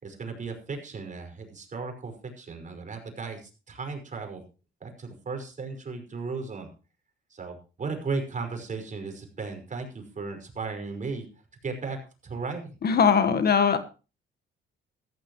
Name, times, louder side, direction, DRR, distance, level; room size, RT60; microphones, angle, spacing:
voice 1, 0.0-4.4 4.8-6.7 7.3-11.3 11.6-12.8, right 4 dB, 40° right, 5 dB, 5.5 m, -36 dB
voice 2, 12.8-13.8, left 6 dB, 50° left, 10 dB, 1.6 m, -20 dB
15.0 x 14.5 x 3.1 m, 0.34 s
cardioid pair, 90°, 20 cm